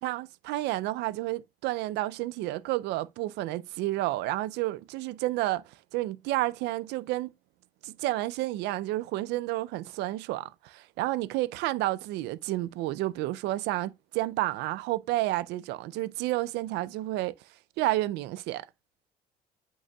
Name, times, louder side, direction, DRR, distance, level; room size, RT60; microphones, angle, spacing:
voice 1, 0.0-5.6 5.9-7.3 7.8-17.3 17.8-18.7, right 16 dB, 85° right, 0.4 m, -30 dB
8.4 x 5.4 x 2.3 m
cardioid pair, 110°, 17 cm